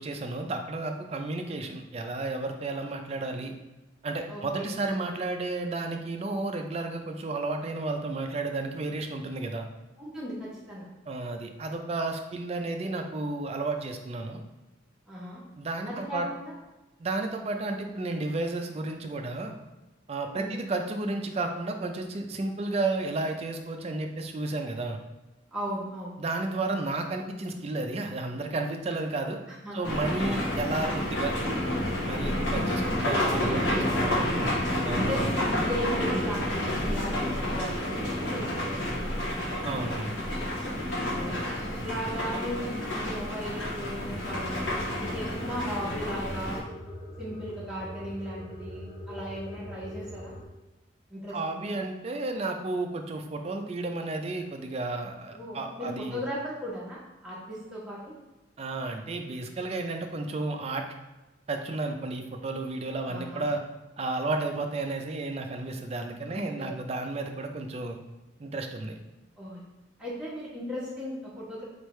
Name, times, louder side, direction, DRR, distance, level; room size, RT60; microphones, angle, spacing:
voice 1, 0.0-3.5 4.0-9.7 11.1-14.4 15.6-16.3 17.0-19.5 20.1-25.0 26.2-29.4 29.7-31.4 32.0-34.1 34.8-35.3 39.6-40.1 51.3-56.2 58.6-60.9 61.5-63.6 64.0-68.0 68.4-68.9, right 2 dB, 35° right, 5 dB, 0.4 m, -32 dB
voice 2, 4.3-4.7 10.0-10.9 15.1-15.4 15.9-16.5 20.3-20.6 25.5-26.2 29.6-30.1 33.0-34.5 35.0-39.4 40.9-41.4 41.8-46.6 47.2-50.3 51.1-51.7 55.3-58.2 63.1-63.5 66.3-66.7 69.4-69.6 70.0-71.6, equal, 5° right, -9 dB, 1.3 m, -37 dB
sound 1, 29.8-46.6, left 1 dB, 75° left, 1.0 m, -29 dB
sound 2, 44.1-50.4, left 1 dB, 35° left, 0.8 m, -42 dB
4.3 x 3.2 x 3.1 m, 1.1 s
head